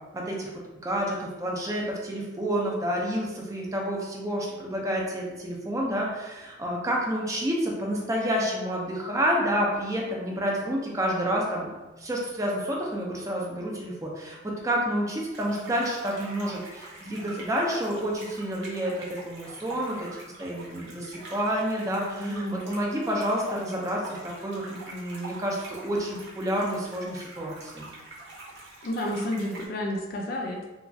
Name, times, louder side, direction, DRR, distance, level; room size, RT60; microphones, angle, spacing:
voice 1, 0.1-0.5 0.8-11.7 12.0-20.1 20.4-27.9, equal, 15° right, -2 dB, 0.4 m, -29 dB
sound 1, 15.3-29.7, right 2 dB, 60° right, 0.7 m, -45 dB
voice 2, 22.2-22.8 28.8-30.6, equal, 50° left, 0 dB, 0.4 m, -31 dB
2.9 x 2.3 x 2.6 m, 1.1 s
head